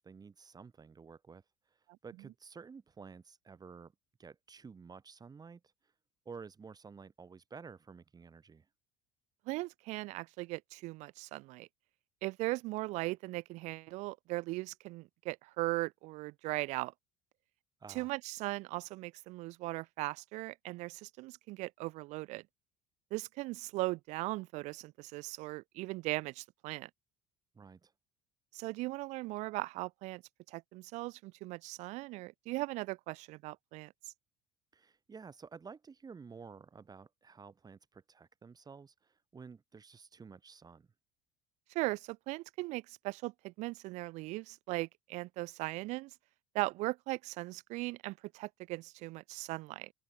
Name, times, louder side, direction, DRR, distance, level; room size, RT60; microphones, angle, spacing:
voice 1, 0.0-1.4 1.7-1.8 2.0-3.9 4.2-5.6 6.2-8.7 17.8-18.1 27.5-27.9 34.7-40.9, right 5 dB, 30° right, 7.8 m, -52 dB
voice 2, 9.5-11.7 12.2-16.9 17.9-22.4 23.1-26.9 28.5-30.2 30.5-33.9 41.7-46.1 46.5-49.9, right 21 dB, 60° right, 0.5 m, -38 dB
hypercardioid pair, 70°, 14 cm